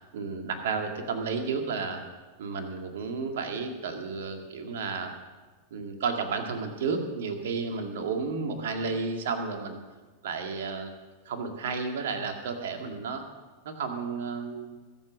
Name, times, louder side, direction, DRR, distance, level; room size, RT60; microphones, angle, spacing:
voice 1, 0.1-2.0 2.4-5.1 5.7-9.8 10.2-10.9 11.3-13.2 13.6-14.8, right 4 dB, 60° right, 5 dB, 2.0 m, -32 dB
21.0 x 7.4 x 6.4 m, 1.3 s
figure-of-eight pair, 90°, 0 cm